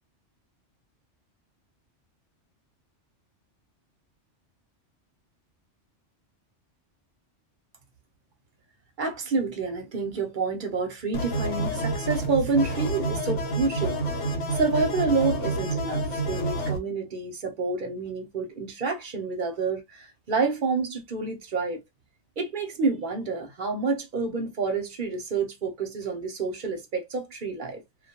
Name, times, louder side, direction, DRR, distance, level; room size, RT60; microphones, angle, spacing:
voice 1, 9.0-14.0 14.5-21.8 22.4-27.8, right 4 dB, 55° right, 0.6 m, -28 dB
sound 1, 11.1-16.8, right 2 dB, 75° left, 1.1 m, -28 dB
2.2 x 2.2 x 2.8 m
omnidirectional pair, 1.2 m